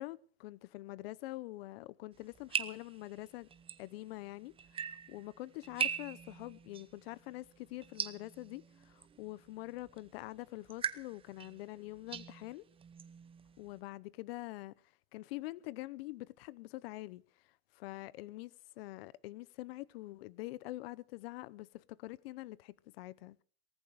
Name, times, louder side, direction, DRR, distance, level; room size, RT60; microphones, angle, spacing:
voice 1, 0.0-3.5 3.8-4.8 5.1-12.7 13.6-14.7 15.1-17.2 17.7-23.4, left 18 dB, 65° left, 0.8 m, -45 dB
sound 1, 2.1-13.8, right 7 dB, 15° right, 0.8 m, -43 dB
18.5 x 14.5 x 4.9 m
supercardioid pair, 135°, 33 cm